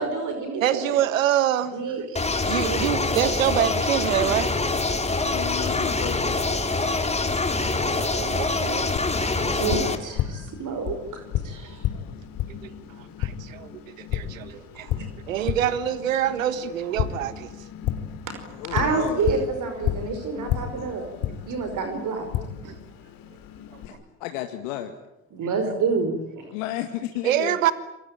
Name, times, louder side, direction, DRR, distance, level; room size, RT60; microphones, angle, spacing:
voice 1, 0.0-0.8 1.7-2.0 2.6-2.8 3.1-3.3 9.4-11.0 11.4-11.8 14.8-14.9 18.2-18.3 18.6-21.1 21.3-22.3 22.6-22.7 25.3-26.5, right 4 dB, 50° right, 6 dB, 5.3 m, -28 dB
voice 2, 0.6-1.7 2.5-4.5 7.6-8.9 12.5-17.5 23.7-23.8 27.2-27.7, right 11 dB, 90° right, 14 dB, 1.5 m, -26 dB
sound 1, 2.2-10.0, left 3 dB, 15° left, 3.5 m, -25 dB
voice 3, 5.3-6.4 11.9-12.2 18.6-19.2 19.8-20.8 21.2-21.4 22.4-22.5 23.6-24.9 26.5-27.6, left 13 dB, 75° left, 6 dB, 2.0 m, -34 dB
Tap, 9.0-23.9, left 10 dB, 60° left, 2.9 m, -32 dB
27.5 x 23.0 x 9.1 m, 0.90 s
hypercardioid pair, 60°, 39 cm